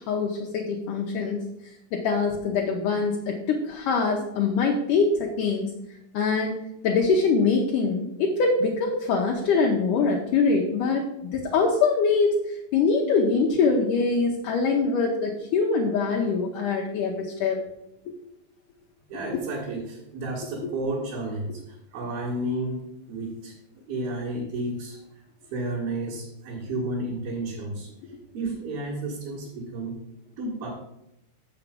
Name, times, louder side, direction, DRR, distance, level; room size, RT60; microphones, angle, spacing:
voice 1, 0.1-1.4 1.9-5.7 6.1-6.6 6.8-17.6 19.3-19.4 28.1-28.2, left 4 dB, 75° left, 0 dB, 2.0 m, -24 dB
voice 2, 19.1-23.5 23.9-25.0 25.5-27.9 28.3-30.0 30.4-30.7, right 2 dB, 70° right, -7 dB, 3.6 m, -32 dB
7.2 x 6.9 x 5.2 m, 0.85 s
omnidirectional pair, 4.6 m